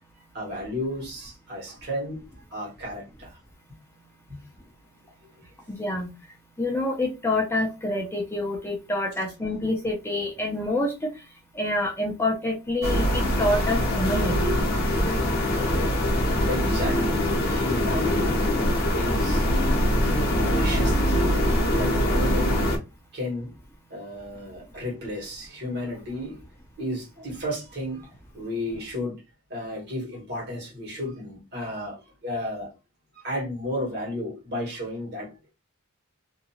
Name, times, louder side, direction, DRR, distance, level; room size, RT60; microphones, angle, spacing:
voice 1, 0.3-2.2 2.5-3.4 4.3-4.4 16.5-18.5 18.9-21.4 21.7-22.7 23.1-23.5 23.9-26.4 26.8-29.2 29.5-32.7 33.2-35.5, left 1 dB, 50° right, 1.4 m, -33 dB
voice 2, 5.8-6.1 6.6-11.1 11.5-14.5, left 1 dB, 10° left, 0.5 m, -27 dB
sound 1, 12.8-22.8, equal, 45° left, 0.7 m, -23 dB
2.7 x 2.2 x 2.8 m
head